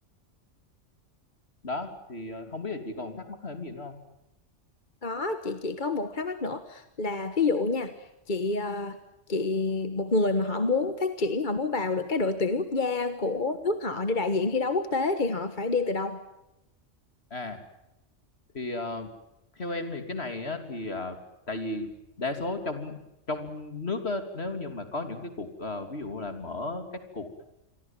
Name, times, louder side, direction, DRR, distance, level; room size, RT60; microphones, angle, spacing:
voice 1, 1.6-4.0 17.3-17.6 18.5-19.1 19.6-21.2 21.5-21.9 22.2-23.0 23.3-26.8 27.1-27.4, left 2 dB, 60° left, 7 dB, 3.3 m, -34 dB
voice 2, 5.0-9.0 9.3-16.2, left 3 dB, 40° left, 9 dB, 1.5 m, -28 dB
28.5 x 23.0 x 7.5 m, 0.90 s
omnidirectional pair, 1.2 m